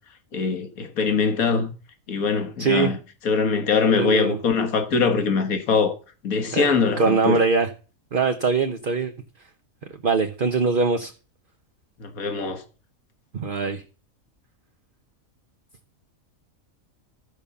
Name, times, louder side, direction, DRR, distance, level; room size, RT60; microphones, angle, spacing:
voice 1, 0.3-1.7 2.1-3.0 3.3-6.0 6.2-7.4 12.0-12.6, left 5 dB, 80° left, 1.8 m, -22 dB
voice 2, 2.6-2.9 3.9-4.4 6.5-7.7 8.1-9.1 9.9-11.1 13.3-13.8, right 4 dB, 45° right, 1.0 m, -22 dB
14.0 x 5.3 x 7.0 m
omnidirectional pair, 1.5 m